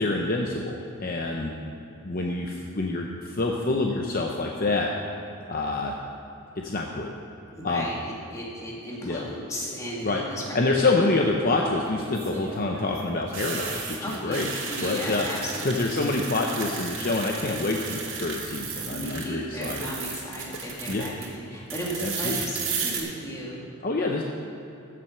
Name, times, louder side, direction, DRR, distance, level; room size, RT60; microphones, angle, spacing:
voice 1, 0.0-1.5 2.0-4.9 5.5-5.9 6.6-7.1 7.6-7.9 9.0-9.3 10.0-10.2 10.5-14.5 14.8-15.3 15.6-19.9 20.9-21.1 22.0-22.4 23.8-24.2, left 2 dB, 40° left, 0 dB, 0.7 m, -27 dB
voice 2, 7.6-10.7 14.0-15.9 18.9-23.6, equal, 15° left, -4 dB, 2.2 m, -35 dB
sound 1, 9.6-10.1 12.0-19.3 19.5-21.3 21.7-23.0, right 5 dB, 60° right, 2.1 m, -34 dB
15.0 x 7.6 x 5.7 m, 2.9 s
head